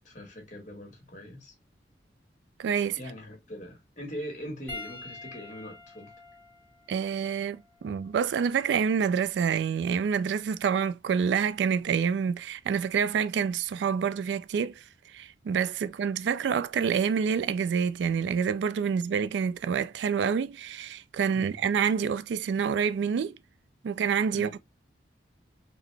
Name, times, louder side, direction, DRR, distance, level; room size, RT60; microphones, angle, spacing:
voice 1, 0.0-1.5 3.0-6.1 21.3-21.5 24.3-24.5, equal, 45° left, 1.3 m, -41 dB
voice 2, 2.6-3.0 6.9-14.7 15.1-23.4 23.8-24.6, right 6 dB, 80° right, 0.3 m, -27 dB
Piano, 4.7-9.4 10.3-10.5 12.4-12.5, left 3 dB, 10° left, 1.3 m, -47 dB
3.8 x 2.0 x 3.2 m
head